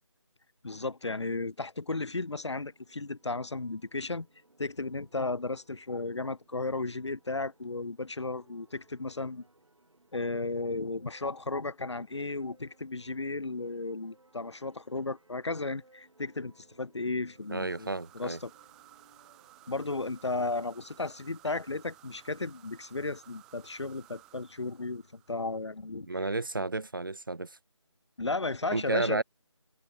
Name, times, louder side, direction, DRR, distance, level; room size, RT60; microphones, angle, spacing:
voice 1, 0.6-4.3 4.6-9.4 10.1-18.5 19.7-26.1 28.2-29.2, left 3 dB, 60° left, 1.3 m, -34 dB
sound 1, 2.2-21.4, right 2 dB, 75° right, 5.3 m, -65 dB
sound 2, 17.3-25.8, right 16 dB, 5° right, 2.1 m, -58 dB
voice 2, 17.5-18.4 26.1-27.6 28.7-29.2, right 2 dB, 40° right, 0.8 m, -31 dB
figure-of-eight pair, 175°, 16 cm